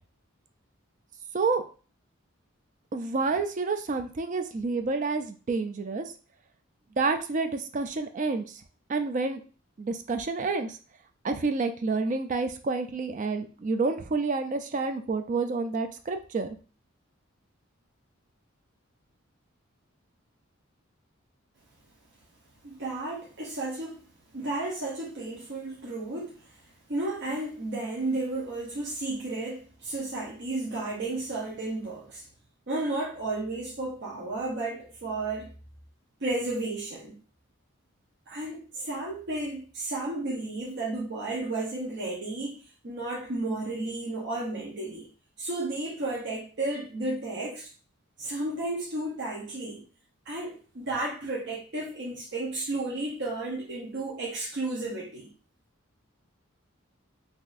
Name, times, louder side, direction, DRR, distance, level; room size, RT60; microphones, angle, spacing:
voice 1, 2.9-6.1 7.0-8.4 8.9-9.4 9.8-10.8 11.2-16.6, right 4 dB, 35° right, 0.3 m, -29 dB
voice 2, 22.6-24.0 24.3-26.4 26.9-32.2 32.7-35.5 36.2-37.1 38.3-45.1 45.4-47.7 48.2-49.8 50.3-55.3, right 2 dB, 55° right, 0.8 m, -33 dB
3.9 x 2.7 x 2.5 m
head